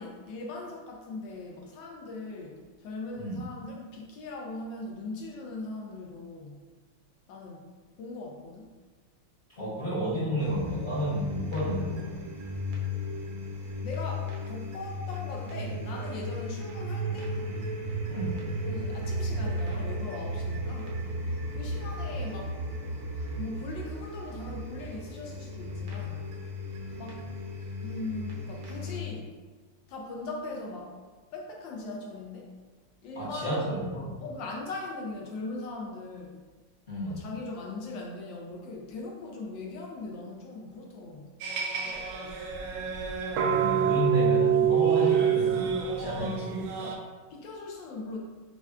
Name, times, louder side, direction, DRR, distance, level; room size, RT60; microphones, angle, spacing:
voice 1, 0.0-6.6 7.3-7.7 8.0-8.7 13.8-17.3 18.6-21.0 21.5-22.6 23.4-26.2 27.0-27.2 27.8-29.4 29.9-31.0 31.3-32.5 33.0-33.8 34.2-36.4 37.0-41.3 46.8-48.2, left 2 dB, 75° left, -1 dB, 1.2 m, -40 dB
voice 2, 9.6-12.2 18.1-18.4 33.1-34.2 36.9-37.2 43.3-46.6, equal, 55° left, -10 dB, 0.5 m, -31 dB
sound 1, 10.4-29.0, equal, 60° right, 1.2 m, -35 dB
sound 2, 41.4-47.0, right 8 dB, 80° right, 1.4 m, -26 dB
6.7 x 2.3 x 2.3 m, 1.3 s
omnidirectional pair, 2.3 m